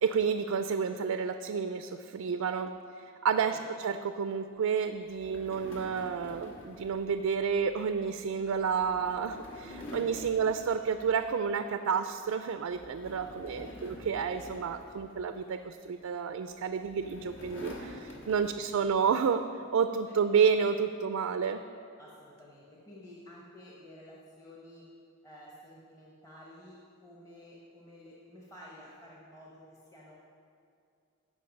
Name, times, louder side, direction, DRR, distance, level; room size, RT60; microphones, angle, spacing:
voice 1, 0.0-2.7 3.0-19.4 19.7-21.6, right 6 dB, 80° right, 8 dB, 0.4 m, -30 dB
sound 1, 5.1-11.6 12.0-12.3 12.7-15.7 16.5-18.9, left 1 dB, 65° left, 1.5 m, -48 dB
voice 2, 13.2-13.8 18.4-19.4 20.1-20.2 22.0-24.9 25.2-30.1, left 1 dB, 15° left, -5 dB, 1.0 m, -52 dB
14.5 x 5.1 x 5.2 m, 2.4 s
head